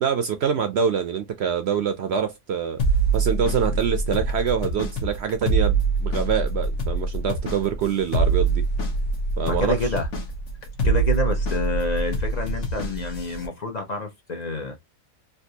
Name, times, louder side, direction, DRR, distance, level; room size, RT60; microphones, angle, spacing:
voice 1, 0.0-2.8 3.1-8.6 9.4-10.0, right 7 dB, 65° right, 0.7 m, -25 dB
sound 1, 2.8-13.5, right 3 dB, 80° left, 1.4 m, -25 dB
voice 2, 9.4-10.1 10.8-14.8, left 3 dB, 40° left, 0.6 m, -28 dB
3.4 x 2.6 x 2.7 m
omnidirectional pair, 1.5 m